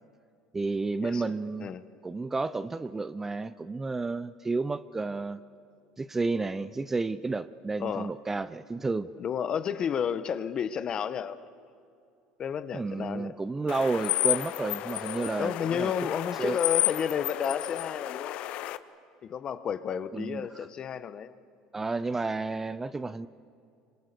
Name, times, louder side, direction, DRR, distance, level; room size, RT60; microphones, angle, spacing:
voice 1, 0.5-1.7 2.0-5.4 6.0-9.1 12.7-15.9 16.4-16.6 20.1-20.5 21.7-23.3, right 3 dB, 15° right, 15 dB, 0.7 m, -31 dB
voice 2, 7.8-8.1 9.2-11.4 12.4-13.3 15.4-18.4 19.2-21.3, left 7 dB, 40° left, 13 dB, 1.2 m, -31 dB
sound 1, 13.7-18.8, left 15 dB, 60° left, 0.9 m, -31 dB
28.0 x 25.5 x 6.9 m, 2.5 s
supercardioid pair, 105°, 2 cm